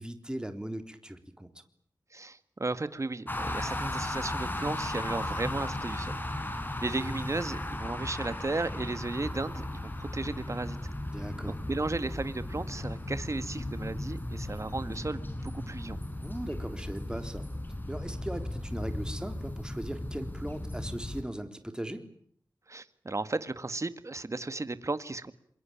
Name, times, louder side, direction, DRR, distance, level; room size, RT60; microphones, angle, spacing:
voice 1, 0.0-1.5 11.1-11.6 16.2-17.5 17.9-22.1, right 1 dB, 10° right, 7 dB, 3.7 m, -38 dB
voice 2, 2.1-6.2 6.8-10.8 11.7-16.0 22.7-25.3, right 3 dB, 40° right, 12 dB, 1.9 m, -35 dB
sound 1, 3.3-21.2, left 1 dB, 25° left, 5.0 m, -36 dB
27.0 x 23.0 x 8.8 m, 0.64 s
cardioid pair, 50°, 8 cm